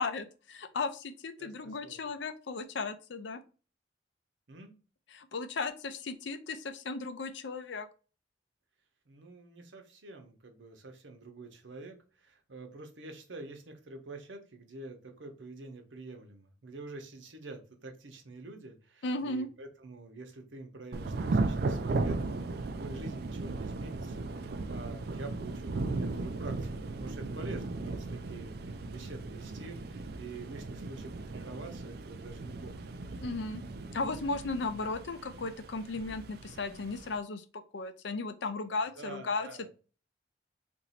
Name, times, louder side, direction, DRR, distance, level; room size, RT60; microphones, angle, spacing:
voice 1, 0.0-3.4 5.1-7.9 19.0-19.5 33.2-33.6 33.9-39.7, left 3 dB, 75° left, 9 dB, 0.5 m, -36 dB
voice 2, 1.4-2.1 4.5-4.7 9.1-33.0 39.0-39.7, right 3 dB, 85° right, 4 dB, 0.9 m, -47 dB
Thunder / Rain, 20.9-37.2, right 3 dB, 55° right, 0.4 m, -36 dB
2.9 x 2.6 x 4.2 m, 0.36 s
head